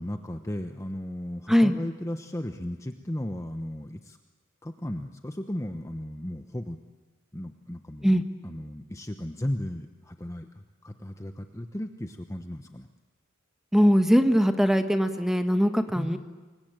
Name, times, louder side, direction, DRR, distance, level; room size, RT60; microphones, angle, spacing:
voice 1, 0.0-4.2 4.6-6.8 7.3-12.9 16.0-16.2, left 1 dB, 15° left, 6 dB, 1.0 m, -35 dB
voice 2, 13.7-16.2, equal, ahead, 7 dB, 1.5 m, -21 dB
27.5 x 23.0 x 9.0 m, 1.3 s
head